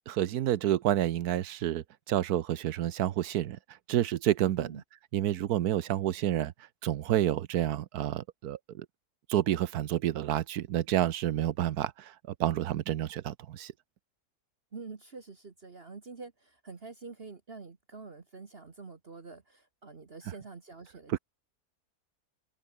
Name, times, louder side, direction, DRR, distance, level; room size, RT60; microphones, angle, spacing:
voice 1, 0.1-3.6 3.9-4.7 5.1-6.5 6.8-8.8 9.3-12.1 12.4-13.7 21.1-21.2, right 12 dB, 75° right, 1.3 m, -29 dB
voice 2, 14.7-21.2, right 4 dB, 40° right, 1.6 m, -46 dB
open air
omnidirectional pair, 1.7 m